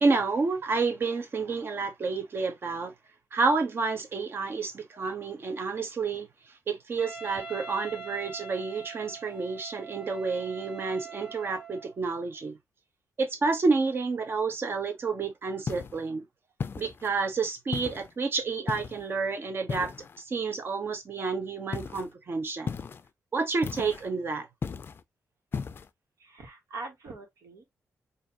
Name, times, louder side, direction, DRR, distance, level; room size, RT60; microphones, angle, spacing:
voice 1, 0.0-2.9 3.3-6.3 6.7-12.5 13.2-16.2 16.8-19.9 20.3-22.7 23.3-24.5, right 4 dB, 45° right, 0.9 m, -29 dB
Wind instrument woodwind instrument, 7.0-12.0, right 5 dB, 15° right, 1.3 m, -43 dB
Footsteps Boots Tile Mono, 15.7-16.0 16.6-17.2 17.7-18.1 18.7-19.1 19.7-20.2 21.7-22.1 22.7-23.1 23.6-24.1 24.6-25.0 25.5-25.9, left 5 dB, 45° left, 0.4 m, -35 dB
voice 2, 26.2-27.6, right 3 dB, 90° right, 1.5 m, -42 dB
4.3 x 2.6 x 2.8 m
cardioid pair, 110°, 5 cm